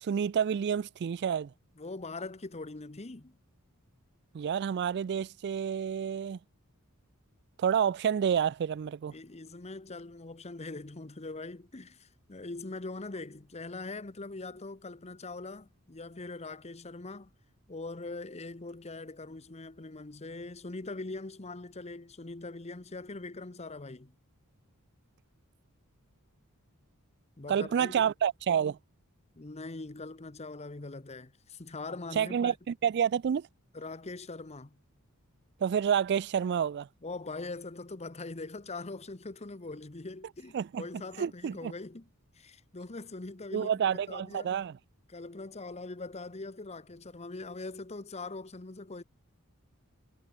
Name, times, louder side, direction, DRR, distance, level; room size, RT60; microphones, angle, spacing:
voice 1, 0.0-1.5 4.3-6.4 7.6-9.1 27.5-28.8 32.2-33.5 35.6-36.9 40.5-40.8 41.2-41.7 43.5-44.7, right 8 dB, 50° right, 0.3 m, -29 dB
voice 2, 1.8-3.4 9.1-17.3 17.7-24.1 27.4-28.1 29.3-32.5 33.7-34.8 37.0-42.1 42.3-44.6 45.1-49.0, left 3 dB, 30° left, 1.0 m, -42 dB
head